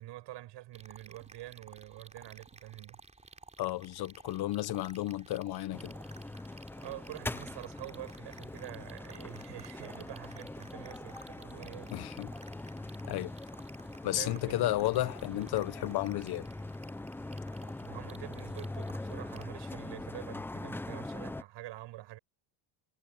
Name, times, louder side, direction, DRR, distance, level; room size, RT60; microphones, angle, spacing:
voice 1, 0.0-3.0 6.8-11.9 14.1-15.1 17.8-22.2, right 16 dB, 60° right, 8.0 m, -46 dB
sound 1, 0.7-19.5, right 3 dB, 15° right, 3.7 m, -55 dB
voice 2, 3.6-5.9 11.9-12.3 13.1-13.3 14.0-16.5, left 15 dB, 50° left, 1.1 m, -33 dB
sound 2, 5.7-21.4, left 2 dB, 5° left, 0.5 m, -42 dB
cardioid pair, 130°, 47 cm